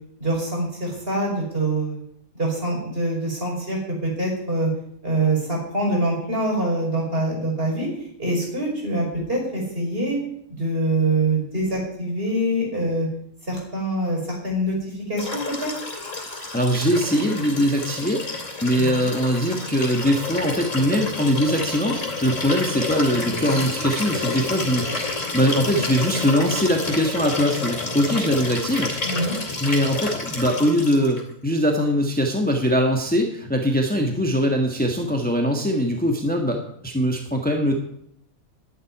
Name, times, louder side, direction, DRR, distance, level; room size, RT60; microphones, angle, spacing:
voice 1, 0.2-2.0 2.4-4.7 5.0-7.9 8.2-10.2 10.5-13.1 13.4-15.7 18.7-19.1 29.0-29.3, right 1 dB, 45° right, -2 dB, 5.9 m, -24 dB
Liquid, 15.2-31.2 32.5-32.6, left 3 dB, 65° left, 3.3 m, -29 dB
voice 2, 16.5-28.9 29.6-37.7, equal, 5° left, 2 dB, 1.4 m, -22 dB
11.0 x 8.0 x 9.9 m, 0.72 s
omnidirectional pair, 1.4 m